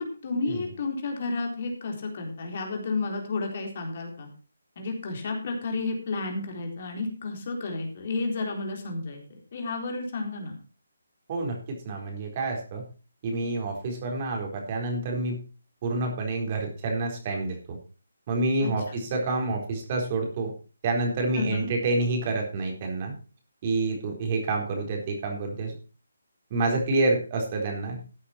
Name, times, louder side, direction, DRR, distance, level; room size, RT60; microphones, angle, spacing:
voice 1, 0.0-4.3 4.8-9.2 9.5-10.5 18.6-19.0 21.3-21.7, left 3 dB, 40° left, 2 dB, 3.8 m, -31 dB
voice 2, 11.3-12.8 13.2-15.4 15.8-17.8 18.3-20.5 20.8-23.1 23.6-25.8 26.5-28.0, right 2 dB, 30° right, 1 dB, 4.2 m, -28 dB
14.0 x 8.4 x 4.5 m, 0.35 s
hypercardioid pair, 165°, 0 cm